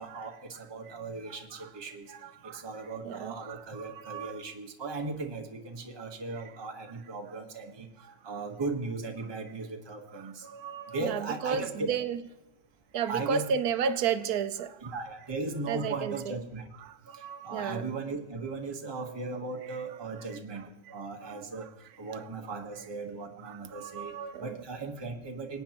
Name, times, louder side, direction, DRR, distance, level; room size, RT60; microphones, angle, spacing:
voice 1, 0.0-2.1 2.4-7.9 8.2-10.5 10.9-11.9 13.1-13.4 14.8-16.7 17.1-20.6 20.9-21.7 22.0-25.6, right 3 dB, 15° right, 1.0 m, -37 dB
voice 2, 2.1-2.6 3.0-4.5 8.0-8.1 10.1-12.2 12.9-14.9 15.7-16.3 16.8-17.9 20.6-20.7 21.2-21.7 22.2-22.3 23.4-24.6, right 7 dB, 70° right, 1.0 m, -34 dB
20.5 x 9.5 x 3.0 m
omnidirectional pair, 1.9 m